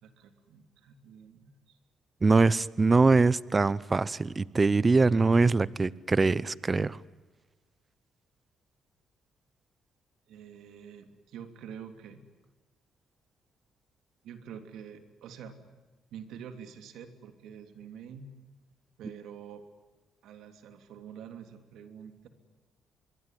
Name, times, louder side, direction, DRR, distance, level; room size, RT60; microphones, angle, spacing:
voice 1, 0.0-1.8 10.3-12.2 14.2-15.6 16.1-18.3 19.0-19.6 20.2-22.3, right 8 dB, 80° right, 8 dB, 3.1 m, -47 dB
voice 2, 2.2-7.0, right 3 dB, 25° right, 20 dB, 0.8 m, -23 dB
26.0 x 22.0 x 9.3 m, 1.2 s
cardioid pair, 90°, 0 cm